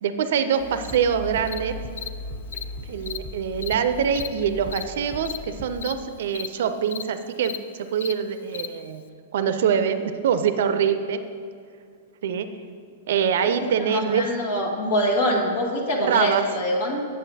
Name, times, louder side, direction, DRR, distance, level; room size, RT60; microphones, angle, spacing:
voice 1, 0.0-1.8 2.9-9.0 9.3-11.2 12.2-12.5 13.1-14.3 16.0-16.4, right 7 dB, 70° right, 10 dB, 0.4 m, -24 dB
sound 1, 0.6-5.8, left 1 dB, 35° left, 1.6 m, -38 dB
Cricket, 0.8-1.0 1.5-1.6 2.0-2.1 2.5-2.6 3.0-3.2 3.6-3.7 4.1-4.3 4.7-4.8 5.2-5.4 5.8-5.9 6.3-6.5 6.9-7.0 7.4-7.6 8.0-8.1 8.5-8.7, left 9 dB, 80° left, 0.3 m, -34 dB
voice 2, 13.4-17.1, equal, 65° left, -1 dB, 1.4 m, -25 dB
9.2 x 7.4 x 2.7 m, 2.2 s
hypercardioid pair, 140°, 0 cm